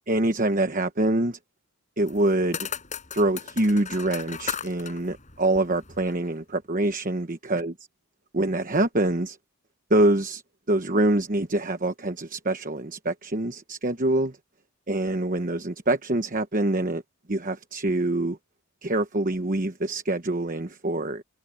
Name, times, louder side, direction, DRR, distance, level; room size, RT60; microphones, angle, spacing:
voice 1, 0.1-1.4 2.0-2.7 3.1-7.7 8.3-9.4 9.9-10.4 10.7-14.4 14.9-17.0 17.3-18.4 18.8-21.2, right 1 dB, 40° right, 1.1 m, -25 dB
sound 1, 2.1-6.3, left 7 dB, 35° left, 6.5 m, -37 dB
head